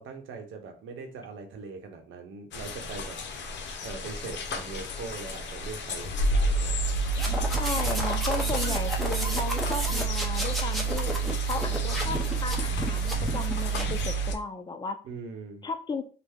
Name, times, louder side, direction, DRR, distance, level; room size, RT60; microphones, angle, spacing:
voice 1, 0.0-6.8 15.0-15.7, right 4 dB, 75° right, 4 dB, 0.9 m, -41 dB
sound 1, 2.5-14.3, right 3 dB, 65° left, 0.7 m, -29 dB
sound 2, 7.1-14.1, left 1 dB, ahead, 1.0 m, -33 dB
voice 2, 7.5-11.1 11.5-15.0 15.6-16.1, left 3 dB, 20° left, 8 dB, 0.5 m, -35 dB
3.3 x 2.2 x 3.5 m, 0.38 s
cardioid pair, 90°, 20 cm